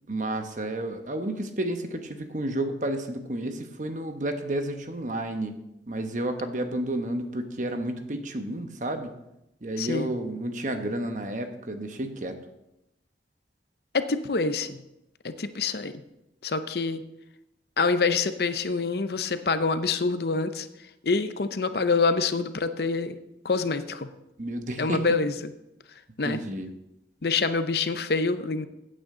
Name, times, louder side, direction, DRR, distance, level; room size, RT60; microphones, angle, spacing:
voice 1, 0.1-5.6 5.9-9.1 9.6-12.4 24.4-25.0 26.2-26.7, right 1 dB, 45° right, 6 dB, 1.1 m, -31 dB
voice 2, 9.8-10.1 13.9-14.8 15.2-15.9 16.4-17.0 17.8-20.7 21.0-23.2 23.4-24.1 24.8-25.5 26.2-26.4 27.2-28.7, left 4 dB, 60° left, 11 dB, 0.7 m, -26 dB
16.0 x 8.8 x 3.8 m, 0.88 s
head